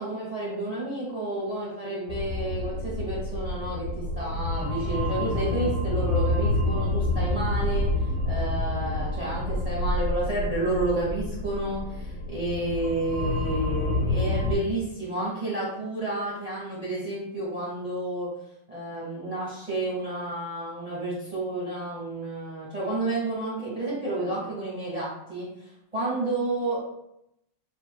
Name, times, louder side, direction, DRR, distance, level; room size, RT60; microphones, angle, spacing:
voice 1, 0.0-3.9 4.1-7.9 8.2-18.3 18.7-26.8, right 2 dB, 20° right, -7 dB, 1.3 m, -30 dB
sound 1, 2.1-14.6, left 2 dB, 85° left, 1.6 m, -28 dB
8.1 x 2.8 x 2.3 m, 0.81 s
omnidirectional pair, 2.1 m